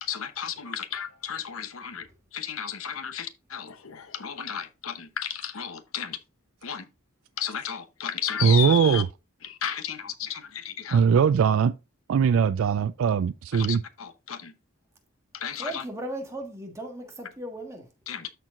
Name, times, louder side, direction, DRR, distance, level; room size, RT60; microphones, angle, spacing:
voice 1, 0.0-6.2 6.6-6.9 7.4-9.0 9.4-11.0 13.5-14.5 15.3-15.8 18.1-18.3, left 9 dB, 90° left, 0.9 m, -34 dB
voice 2, 8.4-9.1 10.9-11.7 12.1-13.8, right 6 dB, 80° right, 0.3 m, -20 dB
voice 3, 15.6-17.9, right 1 dB, 15° right, 1.5 m, -36 dB
13.0 x 4.5 x 2.5 m
head